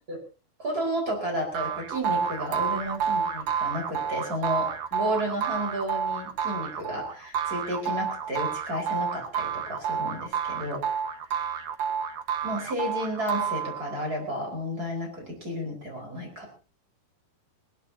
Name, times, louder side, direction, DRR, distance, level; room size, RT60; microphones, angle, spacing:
voice 1, 0.6-11.0 12.4-16.6, equal, 20° right, 1 dB, 5.1 m, -32 dB
sound 1, 1.5-14.1, right 7 dB, 60° right, 1.7 m, -30 dB
20.5 x 20.0 x 2.8 m, 0.33 s
omnidirectional pair, 4.9 m